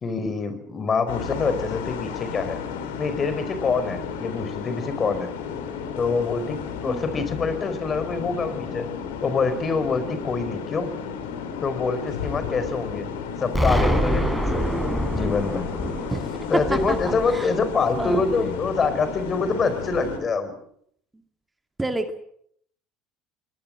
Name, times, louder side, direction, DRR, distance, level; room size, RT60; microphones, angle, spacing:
voice 1, 0.0-2.6 3.0-5.3 6.0-8.9 9.2-10.9 11.6-13.1 13.4-14.6 15.1-15.7 16.5-20.6, left 4 dB, 35° left, 12 dB, 4.6 m, -25 dB
sound 1, 1.1-20.2, left 7 dB, 85° left, 4.3 m, -33 dB
Explosion, 13.5-18.4, equal, 5° left, 6.2 m, -26 dB
voice 2, 16.1-17.0 17.3-17.6 18.0-18.5 21.8-22.1, right 2 dB, 15° right, 6 dB, 2.2 m, -28 dB
22.0 x 20.5 x 7.6 m, 0.67 s
hypercardioid pair, 80°, 0 cm